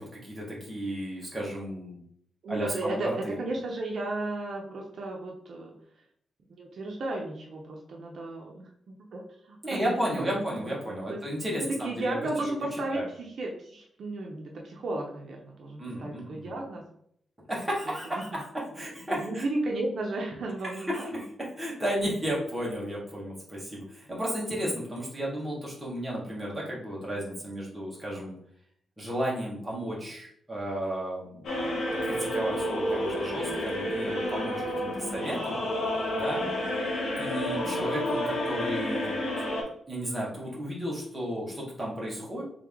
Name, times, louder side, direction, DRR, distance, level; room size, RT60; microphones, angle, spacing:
voice 1, 0.0-2.0 2.5-3.4 9.6-12.1 12.9-13.1 15.8-16.5 17.5-18.4 18.7-19.4 20.7-21.3 21.6-28.3 29.0-31.7 32.0-35.6 36.2-36.4 37.2-39.1 39.4-42.4, equal, 10° right, -5 dB, 1.3 m, -33 dB
voice 2, 2.4-5.7 6.6-8.7 9.1-9.2 9.5-10.0 10.3-11.2 11.8-16.8 19.2-21.1 28.1-28.3 34.9-35.2 36.4-36.7 37.6-37.9, right 2 dB, 55° right, -1 dB, 0.6 m, -34 dB
sound 1, 31.4-39.6, left 1 dB, 65° left, 1.1 m, -30 dB
3.4 x 3.3 x 3.5 m, 0.68 s
wide cardioid pair, 165°, 0 cm